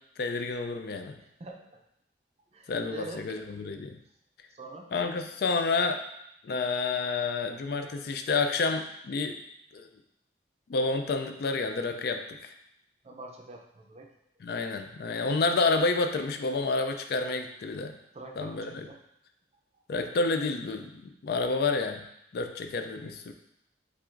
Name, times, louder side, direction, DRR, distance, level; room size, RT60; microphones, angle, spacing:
voice 1, 0.2-1.2 2.7-4.0 4.9-6.0 6.4-9.4 9.7-9.9 10.7-12.5 14.4-18.0 18.4-18.9 19.9-22.0 22.3-23.3, left 3 dB, 60° left, 6 dB, 0.3 m, -29 dB
voice 2, 1.2-1.8 2.5-3.4 4.5-4.9 13.0-14.1 18.1-19.0, right 2 dB, 35° right, 1 dB, 0.5 m, -44 dB
7.2 x 2.5 x 2.5 m, 0.79 s
head